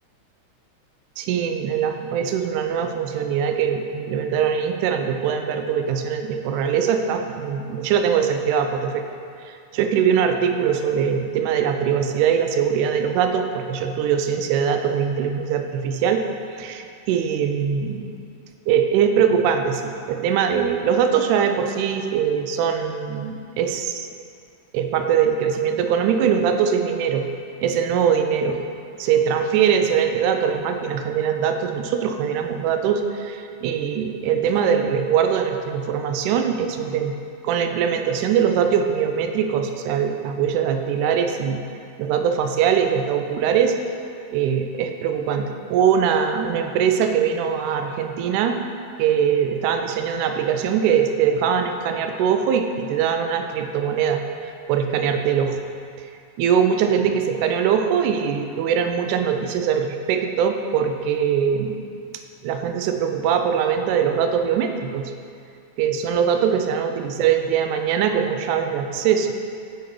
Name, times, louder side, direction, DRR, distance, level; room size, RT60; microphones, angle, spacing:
voice 1, 1.2-9.0 9.5-16.2 16.6-18.1 18.7-24.1 24.7-27.3 27.6-28.7 29.0-37.2 37.4-41.6 42.0-43.8 44.3-48.6 49.0-55.6 56.4-61.8 62.4-65.1 65.8-69.3, right 7 dB, 85° right, 6 dB, 2.0 m, -22 dB
6.7 x 5.2 x 4.5 m, 2.4 s
omnidirectional pair, 3.6 m